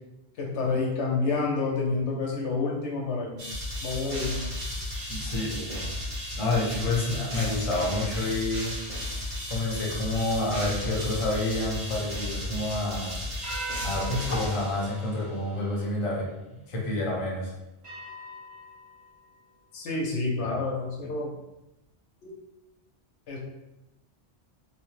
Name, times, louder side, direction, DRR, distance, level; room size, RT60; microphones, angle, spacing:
voice 1, 0.4-3.5 3.8-4.5 19.7-21.3 22.2-22.3 23.3-23.4, left 3 dB, 90° left, -1 dB, 1.0 m, -29 dB
sound 1, 3.4-15.3, left 1 dB, 40° right, 1.0 m, -34 dB
voice 2, 5.1-5.9 6.3-8.7 9.5-13.2 13.8-17.5, left 2 dB, 35° left, -3 dB, 0.6 m, -29 dB
sound 2, 9.9-12.8 13.4-16.2 16.8-16.9 17.8-19.4, right 2 dB, 70° right, 1.1 m, -43 dB
3.0 x 2.1 x 3.1 m, 0.94 s
omnidirectional pair, 1.1 m